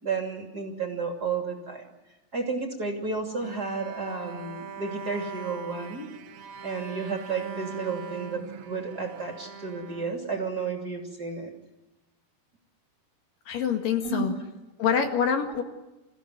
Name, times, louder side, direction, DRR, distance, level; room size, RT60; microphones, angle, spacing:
voice 1, 0.0-1.8 2.3-6.1 6.6-11.5 14.0-14.3 15.5-15.6, right 4 dB, 30° right, 2 dB, 2.8 m, -32 dB
Bowed string instrument, 3.4-10.8, right 6 dB, 65° right, 1.4 m, -41 dB
voice 2, 13.5-14.3 14.8-15.6, left 7 dB, 65° left, 5 dB, 3.6 m, -25 dB
28.5 x 15.5 x 9.4 m, 1.0 s
omnidirectional pair, 4.2 m